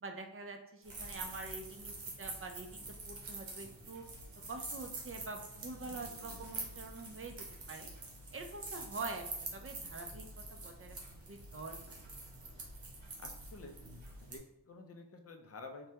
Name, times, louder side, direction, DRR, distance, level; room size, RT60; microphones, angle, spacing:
voice 1, 0.0-4.0 4.5-7.9 8.3-11.0 11.3-12.0, right 3 dB, 30° right, 4 dB, 0.4 m, -46 dB
sound 1, 0.8-14.4, right 3 dB, 90° right, 0.8 m, -46 dB
voice 2, 5.9-6.5 13.2-13.8 14.2-15.9, left 3 dB, 35° left, 5 dB, 0.4 m, -51 dB
3.3 x 2.2 x 2.8 m, 0.86 s
wide cardioid pair, 65°, 44 cm